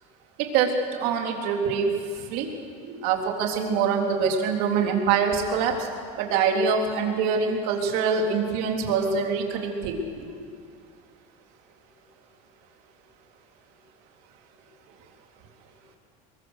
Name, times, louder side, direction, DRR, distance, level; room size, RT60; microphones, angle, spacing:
voice 1, 0.4-0.7 1.0-1.9 2.3-2.5 2.8-5.9 6.2-10.3, right 6 dB, 60° right, 2 dB, 3.7 m, -24 dB
23.0 x 22.0 x 6.6 m, 2.2 s
supercardioid pair, 135°, 17 cm